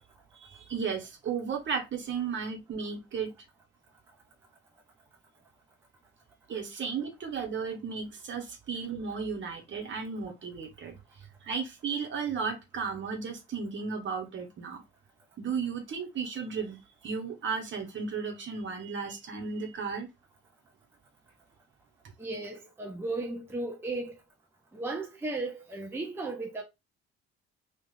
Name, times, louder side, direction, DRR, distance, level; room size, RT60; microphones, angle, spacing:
voice 1, 0.3-3.3 6.5-14.8 15.4-20.1, right 5 dB, 35° right, 1.2 m, -34 dB
voice 2, 22.2-24.1 24.7-26.6, right 2 dB, 5° right, 0.6 m, -35 dB
3.1 x 2.5 x 3.8 m
figure-of-eight pair, 50°, 32 cm